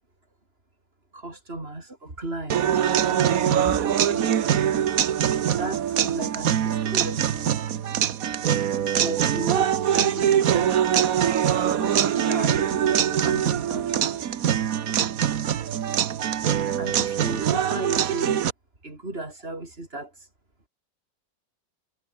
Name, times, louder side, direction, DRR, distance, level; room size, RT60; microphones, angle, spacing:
voice 1, 1.1-4.5 5.5-7.6 8.8-10.8 11.6-14.5 16.8-18.5 18.8-20.3, right 2 dB, 30° right, 4.9 m, -36 dB
sound 1, 2.5-18.5, right 9 dB, 55° right, 1.3 m, -23 dB
omnidirectional pair, 1.9 m